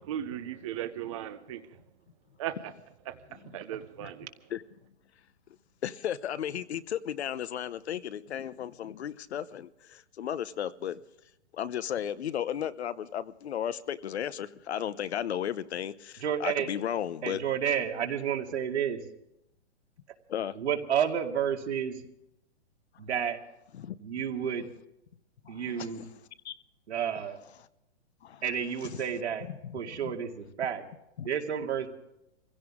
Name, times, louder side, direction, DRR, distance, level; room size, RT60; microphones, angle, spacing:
voice 1, 0.0-1.7 2.4-2.6 3.1-4.3, right 11 dB, 30° right, 9 dB, 0.6 m, -37 dB
voice 2, 5.8-11.0 11.5-17.4 20.3-20.5 23.7-24.0 25.4-26.1 26.4-26.5 28.2-28.4 28.8-29.0 29.5-30.1 31.2-31.3, left 10 dB, 70° left, 15 dB, 0.9 m, -35 dB
voice 3, 16.2-16.7 17.2-19.0 20.6-22.0 23.0-23.4 24.0-24.6 25.5-26.0 26.9-27.4 28.4-29.5 29.7-30.8 31.2-31.9, right 8 dB, 75° right, 3 dB, 2.4 m, -30 dB
24.0 x 16.0 x 3.7 m, 0.84 s
hypercardioid pair, 165°, 34 cm